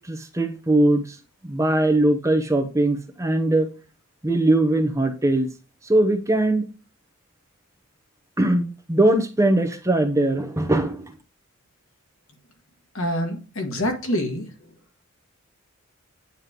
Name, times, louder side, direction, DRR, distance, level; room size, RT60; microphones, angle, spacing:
voice 1, 0.1-1.0 1.4-3.7 4.2-5.5 5.8-6.6 8.4-11.1, right 1 dB, 15° right, 0.9 m, -20 dB
voice 2, 12.9-14.5, equal, 70° left, 2.0 m, -26 dB
9.3 x 3.2 x 5.1 m
head